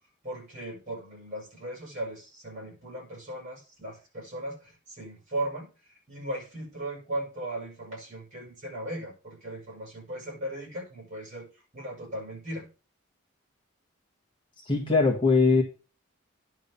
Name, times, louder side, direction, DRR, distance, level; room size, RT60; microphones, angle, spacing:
voice 1, 0.2-5.7 6.1-11.5 11.7-12.7, right 1 dB, 35° right, 0 dB, 6.3 m, -37 dB
voice 2, 14.7-15.6, left 4 dB, 25° left, -2 dB, 1.8 m, -21 dB
10.5 x 3.8 x 7.0 m, 0.34 s
head